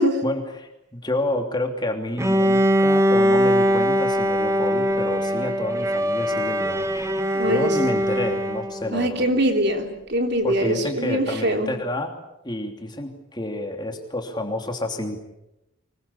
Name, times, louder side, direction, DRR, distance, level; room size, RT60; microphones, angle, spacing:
voice 1, 0.2-6.9 7.4-9.3 10.4-12.2 12.4-15.2, left 1 dB, 20° left, 4 dB, 2.9 m, -29 dB
Bowed string instrument, 2.2-8.9, equal, 15° right, 1.5 m, -21 dB
voice 2, 7.3-7.7 8.9-11.7, equal, 50° right, 4 dB, 3.5 m, -23 dB
25.0 x 22.5 x 8.6 m, 0.89 s
head